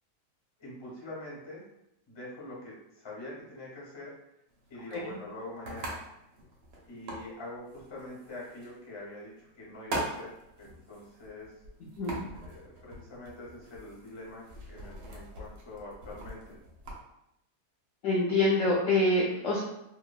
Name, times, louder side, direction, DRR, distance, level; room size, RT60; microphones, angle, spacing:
voice 1, 0.6-1.6 2.1-4.1 4.7-6.0 6.8-10.3 10.6-11.5 12.3-16.6, left 2 dB, 25° left, -5 dB, 0.6 m, -44 dB
sound 1, 4.5-17.0, right 1 dB, 85° right, 1.3 m, -43 dB
voice 2, 18.0-19.6, left 2 dB, 70° left, -5 dB, 0.8 m, -25 dB
2.9 x 2.2 x 2.3 m, 0.82 s
omnidirectional pair, 1.7 m